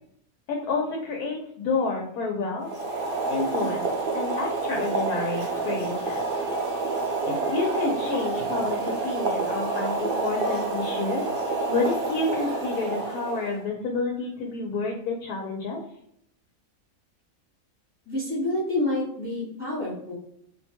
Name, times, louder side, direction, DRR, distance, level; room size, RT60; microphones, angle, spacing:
voice 1, 0.5-2.7 3.3-6.2 7.3-11.3 11.7-15.8, left 3 dB, 85° left, 0 dB, 1.1 m, -29 dB
Boiling, 2.6-13.6, right 3 dB, 60° right, 0.6 m, -28 dB
voice 2, 18.1-20.1, left 1 dB, 15° left, -5 dB, 0.4 m, -28 dB
2.6 x 2.2 x 2.7 m, 0.72 s
omnidirectional pair, 1.5 m